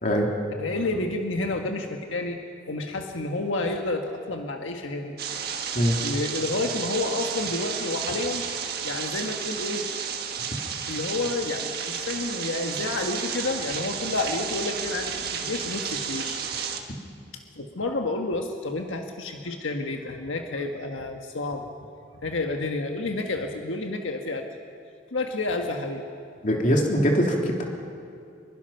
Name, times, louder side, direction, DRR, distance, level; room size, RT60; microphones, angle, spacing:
voice 1, 0.6-2.4 2.7-5.2 6.0-8.5 8.8-9.9 10.9-16.4 17.3-21.7 22.2-24.5 25.1-26.1, left 2 dB, 85° left, 3 dB, 1.5 m, -30 dB
sound 1, 5.2-16.8, right 7 dB, 50° right, 1.6 m, -32 dB
voice 2, 26.4-27.7, equal, 40° left, 0 dB, 3.2 m, -22 dB
25.5 x 22.5 x 5.8 m, 2.4 s
head